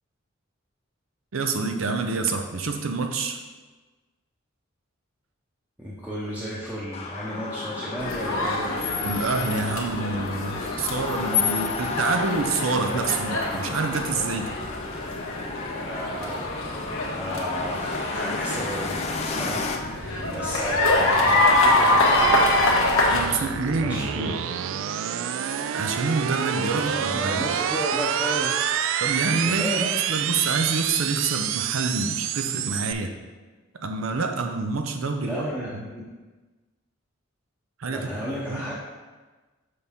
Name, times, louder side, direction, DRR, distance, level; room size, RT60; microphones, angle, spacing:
voice 1, 1.3-3.4 9.0-14.6 23.1-24.3 25.7-27.5 29.0-33.1 33.8-35.5 37.8-38.1 38.5-38.7, right 3 dB, 90° right, 5 dB, 0.7 m, -27 dB
voice 2, 5.8-8.8 15.7-16.7 17.1-22.9 23.2-24.5 26.7-28.6 29.4-30.0 35.2-36.1 37.9-38.7, equal, 5° right, -7 dB, 0.8 m, -33 dB
sound 1, 6.9-19.8, left 5 dB, 30° left, 0.5 m, -32 dB
sound 2, 8.0-23.2, left 1 dB, 85° left, 1.3 m, -25 dB
sound 3, 19.3-32.9, right 9 dB, 70° right, 0.3 m, -29 dB
6.8 x 5.4 x 3.6 m, 1.3 s
head